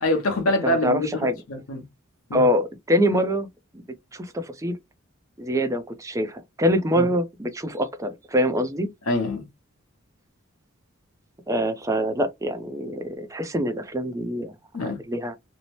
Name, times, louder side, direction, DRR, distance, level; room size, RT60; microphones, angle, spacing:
voice 1, 0.0-1.1 1.5-1.8 2.3-2.4 7.0-7.1 9.1-9.4 14.7-15.0, left 1 dB, 80° left, 0.8 m, -24 dB
voice 2, 0.6-1.4 2.3-3.5 4.1-4.8 5.4-8.9 11.5-14.5 14.8-15.4, equal, 15° right, 0.5 m, -24 dB
2.7 x 2.1 x 3.0 m
head